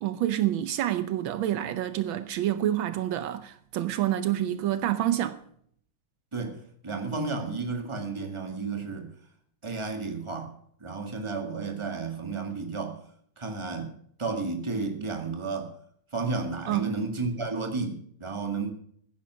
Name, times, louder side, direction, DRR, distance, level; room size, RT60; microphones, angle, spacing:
voice 1, 0.0-5.4 16.7-16.9, right 12 dB, 75° right, 1.5 m, -28 dB
voice 2, 6.3-9.1 9.6-10.5 10.8-13.0 13.4-13.9 14.2-15.8 16.1-18.7, right 4 dB, 15° right, 1.8 m, -32 dB
15.5 x 10.5 x 6.2 m
omnidirectional pair, 2.2 m